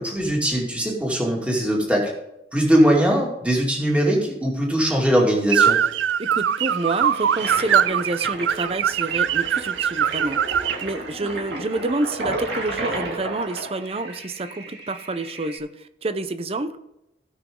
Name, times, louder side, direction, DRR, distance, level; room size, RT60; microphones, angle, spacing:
voice 1, 0.0-2.1 2.5-5.8, equal, 5° right, -2 dB, 2.4 m, -20 dB
sound 1, 5.5-10.8, right 8 dB, 85° right, 0.4 m, -22 dB
voice 2, 6.2-10.4 10.8-16.8, right 2 dB, 35° right, 11 dB, 0.6 m, -28 dB
Toilet flush, 6.5-15.6, right 2 dB, 65° right, 2.5 m, -33 dB
17.0 x 6.2 x 3.8 m, 0.88 s
head